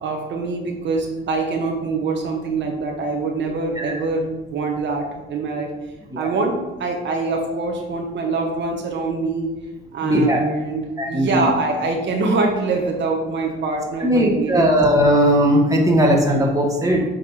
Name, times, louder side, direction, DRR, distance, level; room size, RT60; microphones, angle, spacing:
voice 1, 0.0-5.7 6.2-6.5 6.8-9.5 9.9-14.8, right 3 dB, 65° right, 2 dB, 1.1 m, -24 dB
voice 2, 10.0-10.4 11.0-11.5 14.0-17.0, equal, 15° right, -1 dB, 1.6 m, -18 dB
8.0 x 3.3 x 5.6 m, 1.1 s
cardioid pair, 90°, 20 cm